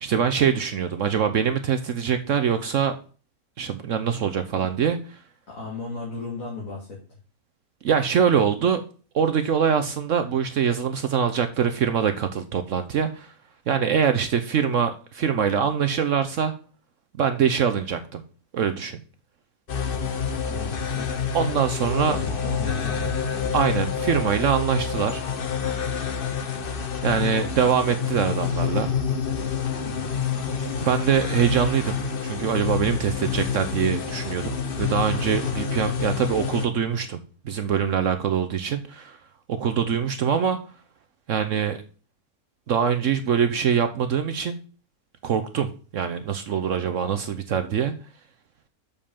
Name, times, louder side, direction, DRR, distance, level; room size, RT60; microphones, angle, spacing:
voice 1, 0.0-2.9 3.6-5.2 7.8-8.8 9.1-13.3 13.7-16.5 17.2-18.2 18.5-19.0 21.3-22.2 23.5-25.2 27.0-28.9 30.8-37.2 37.4-39.2 39.5-40.6 41.3-41.8 42.7-44.6 45.2-45.7 45.9-47.9, right 7 dB, 65° right, 8 dB, 1.0 m, -23 dB
voice 2, 5.5-6.9 20.5-21.1 22.1-23.2 29.8-30.1, left 3 dB, 60° left, -4 dB, 2.7 m, -34 dB
sound 1, 19.7-36.7, left 6 dB, 40° left, 1.0 m, -28 dB
6.7 x 5.4 x 7.1 m, 0.39 s
omnidirectional pair, 1.6 m